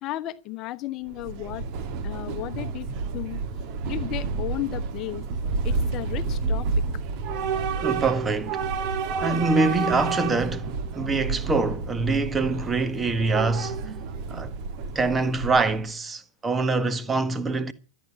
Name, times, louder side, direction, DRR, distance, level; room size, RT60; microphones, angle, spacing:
voice 1, 0.0-1.6 2.0-3.4 3.9-5.3 5.6-6.9, left 15 dB, 35° left, 1.0 m, -34 dB
Train / Subway metro underground, 1.1-15.9, right 4 dB, 45° right, 1.9 m, -30 dB
voice 2, 7.8-8.6 9.2-13.9 14.3-14.5 14.9-17.7, right 3 dB, 15° right, 1.5 m, -25 dB
13.5 x 9.4 x 8.7 m
figure-of-eight pair, 90°, 0 cm